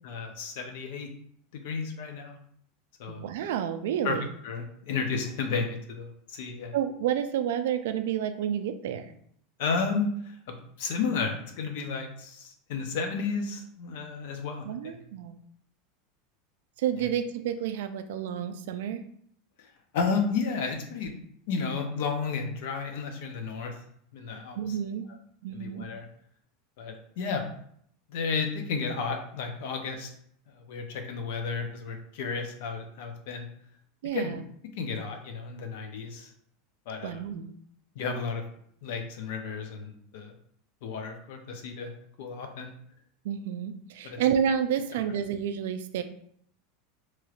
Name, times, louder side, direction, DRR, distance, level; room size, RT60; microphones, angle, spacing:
voice 1, 0.0-1.1 1.5-2.4 3.0-3.3 4.0-4.1 4.4-6.7 9.6-14.9 19.6-19.7 19.9-21.1 21.5-23.7 24.1-24.6 25.5-26.1 26.8-27.4 28.1-30.1 30.5-33.5 34.1-34.4 34.8-36.3 36.9-37.2 38.0-38.4 38.8-40.3 40.8-41.9 42.2-42.7 44.0-44.2, left 5 dB, 60° left, 5 dB, 0.6 m, -32 dB
voice 2, 3.1-4.3 6.7-9.1 14.6-15.3 16.8-19.0 24.5-25.1 25.4-25.8 34.0-34.4 37.0-37.5 43.2-46.0, right 9 dB, 75° right, 9 dB, 0.3 m, -30 dB
3.0 x 2.9 x 2.4 m, 0.65 s
supercardioid pair, 170°, 0 cm